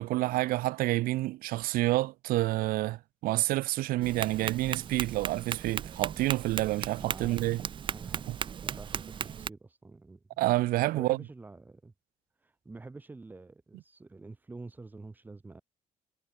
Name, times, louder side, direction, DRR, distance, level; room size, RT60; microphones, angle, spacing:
voice 1, 0.0-7.6 8.3-8.4 10.4-11.2, right 17 dB, 85° right, 0.9 m, -28 dB
Tap, 4.0-9.5, right 8 dB, 35° right, 3.2 m, -37 dB
voice 2, 7.0-7.4 7.7-8.2 8.6-10.2 10.9-11.9 12.4-15.6, right 3 dB, 10° right, 3.8 m, -48 dB
cardioid pair, 180°, 15 cm